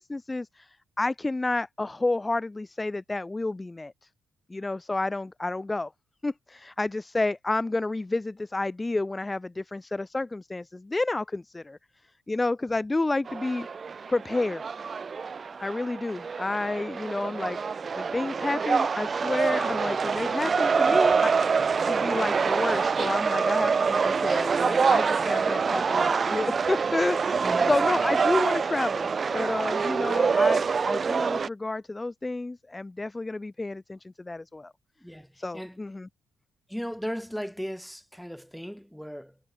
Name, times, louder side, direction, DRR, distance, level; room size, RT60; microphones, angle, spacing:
voice 1, 0.0-3.9 4.5-5.9 6.2-11.8 12.3-13.7 14.1-14.6 15.6-17.6 18.0-21.3 21.9-34.7 35.4-36.1, left 2 dB, 20° left, 0.3 m, -30 dB
sound 1, 13.3-31.5, right 5 dB, 40° right, 0.5 m, -25 dB
voice 2, 27.4-27.7 35.0-35.8 36.7-39.4, equal, ahead, 1.4 m, -36 dB
cardioid pair, 85°, 0 cm